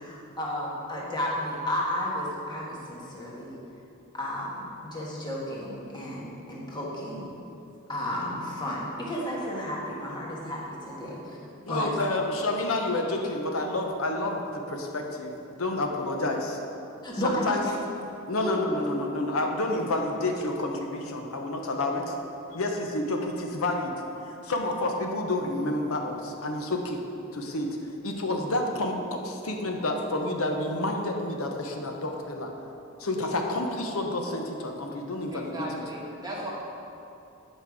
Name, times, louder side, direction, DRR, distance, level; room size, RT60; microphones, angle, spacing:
voice 1, 0.0-3.6 4.2-7.3 7.9-11.4 11.6-11.9 17.0-17.6 18.4-18.8, left 1 dB, 20° left, -5 dB, 1.4 m, -33 dB
voice 2, 11.7-16.6 17.2-17.6 18.3-22.1 22.5-24.0 24.4-27.0 27.3-27.7 28.0-32.5 33.0-35.7, left 2 dB, 75° left, 2 dB, 0.9 m, -29 dB
voice 3, 35.3-36.5, right 1 dB, 20° right, -4 dB, 1.3 m, -36 dB
8.3 x 5.4 x 4.8 m, 2.8 s
head